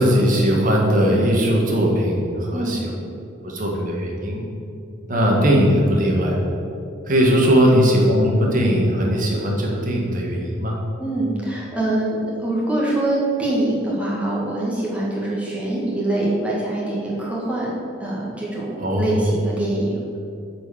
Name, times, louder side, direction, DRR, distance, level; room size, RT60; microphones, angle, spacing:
voice 1, 0.0-2.9 3.4-4.4 5.1-6.3 7.1-10.8 18.8-19.2, equal, 40° right, -2 dB, 1.6 m, -19 dB
voice 2, 11.0-17.7 18.0-20.2, right 1 dB, 5° right, -6 dB, 1.8 m, -24 dB
8.0 x 4.7 x 7.0 m, 2.6 s
head